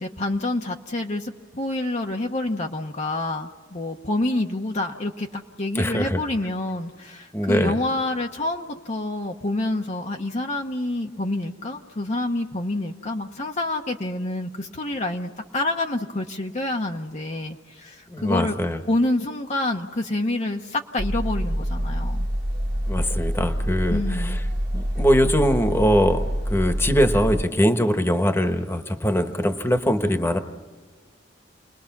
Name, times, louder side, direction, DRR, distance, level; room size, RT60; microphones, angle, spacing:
voice 1, 0.0-18.6 18.9-22.3 23.9-24.4, left 2 dB, 40° left, 1 dB, 1.0 m, -27 dB
voice 2, 5.7-6.2 7.3-7.7 18.1-18.8 22.9-24.3 24.7-30.4, equal, 15° left, 6 dB, 1.3 m, -22 dB
sound 1, 21.0-27.4, equal, 60° right, 1.9 m, -26 dB
29.0 x 21.0 x 6.0 m, 1.5 s
head